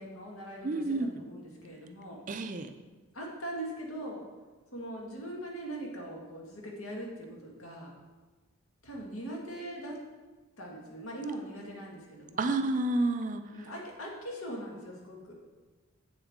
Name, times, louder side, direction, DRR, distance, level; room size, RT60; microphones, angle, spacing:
voice 1, 0.0-2.2 3.1-4.2 4.7-7.9 8.8-10.0 10.6-12.6 13.5-15.3, right 1 dB, 70° left, -2 dB, 1.8 m, -41 dB
voice 2, 0.6-1.1 2.3-2.7 12.4-13.7, right 2 dB, 35° right, 8 dB, 0.4 m, -30 dB
8.0 x 7.0 x 3.6 m, 1.3 s
head